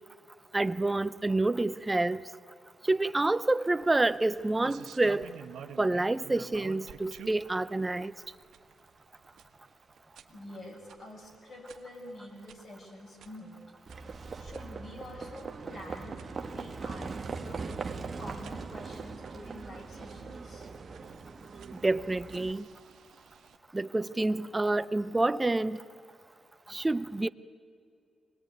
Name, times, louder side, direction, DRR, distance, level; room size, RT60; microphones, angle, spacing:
voice 1, 0.5-2.2 2.9-5.2 5.8-8.1 21.8-22.7 23.7-25.8 26.7-27.3, right 2 dB, 15° right, 0.6 m, -28 dB
sound 1, 3.7-23.6, right 8 dB, 75° right, 1.6 m, -53 dB
voice 2, 10.3-13.6 14.4-17.6 18.1-20.7, left 1 dB, 45° left, 6.7 m, -47 dB
Livestock farm animals working animals, 13.9-22.5, right 4 dB, 35° right, 1.4 m, -40 dB
25.5 x 19.5 x 9.5 m
cardioid pair, 130°, 0 cm